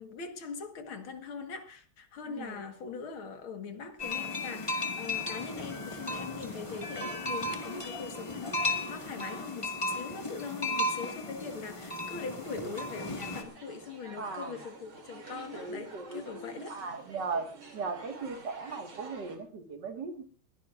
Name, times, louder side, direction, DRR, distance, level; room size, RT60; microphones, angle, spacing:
voice 1, 0.0-16.8, left 5 dB, 75° left, 2.4 m, -41 dB
voice 2, 2.3-2.6 14.2-14.6 15.5-17.5 17.7-20.2, right 4 dB, 55° right, 2.4 m, -38 dB
sound 1, 4.0-13.4, left 2 dB, 15° left, 1.7 m, -35 dB
sound 2, 11.8-19.4, right 4 dB, 75° right, 3.6 m, -50 dB
22.0 x 16.0 x 2.5 m
omnidirectional pair, 2.3 m